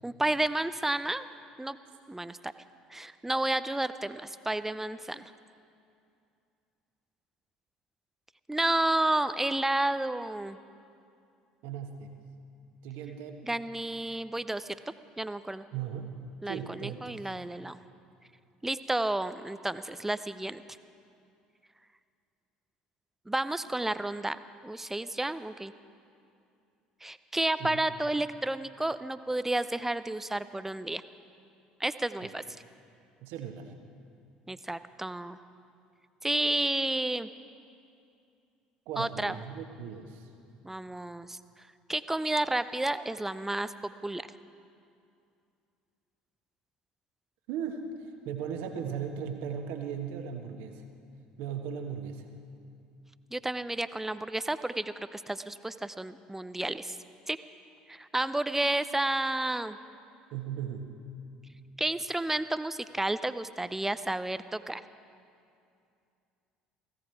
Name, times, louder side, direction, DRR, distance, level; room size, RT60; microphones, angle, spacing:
voice 1, 0.0-1.2 1.6-1.8 2.1-2.5 2.9-5.3 8.5-10.6 13.4-14.8 15.2-15.6 16.4-17.8 18.6-20.6 23.3-24.4 24.6-25.7 27.0-31.0 31.8-32.4 34.5-35.4 36.2-37.3 39.0-39.4 40.6-41.4 41.9-44.2 53.3-57.0 57.3-57.4 57.9-59.8 61.8-64.8, right 1 dB, 10° right, 13 dB, 0.6 m, -31 dB
voice 2, 11.6-12.2 12.8-13.4 15.7-16.2 16.5-17.1 27.6-27.8 33.2-33.7 38.9-40.3 47.5-50.8 51.4-52.3 60.3-60.9, right 7 dB, 60° right, 4 dB, 1.4 m, -37 dB
17.5 x 16.0 x 4.6 m, 2.5 s
figure-of-eight pair, 60°, 4 cm